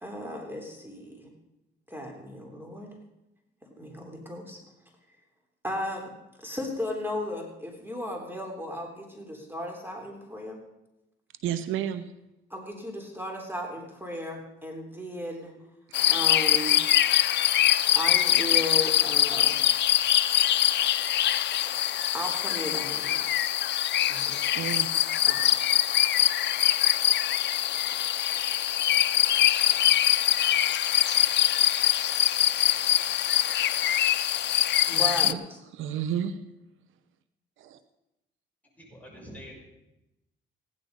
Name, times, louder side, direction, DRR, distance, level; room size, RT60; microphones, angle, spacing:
voice 1, 0.0-1.3 1.9-2.9 3.8-4.6 5.6-6.1 6.4-10.6 12.5-15.5 16.1-16.8 17.9-19.6 22.1-23.3 24.1-24.4 25.3-25.5 34.9-35.6, left 1 dB, 10° right, 1 dB, 3.4 m, -35 dB
voice 2, 11.4-12.0 24.3-24.9 34.9-35.4 35.7-36.4 37.6-37.8, right 9 dB, 80° right, 11 dB, 0.9 m, -31 dB
sound 1, 15.9-35.3, left 12 dB, 60° left, 0.5 m, -23 dB
voice 3, 38.8-39.6, equal, 10° left, -3 dB, 6.2 m, -45 dB
15.5 x 11.0 x 5.3 m, 0.91 s
cardioid pair, 90°, 20 cm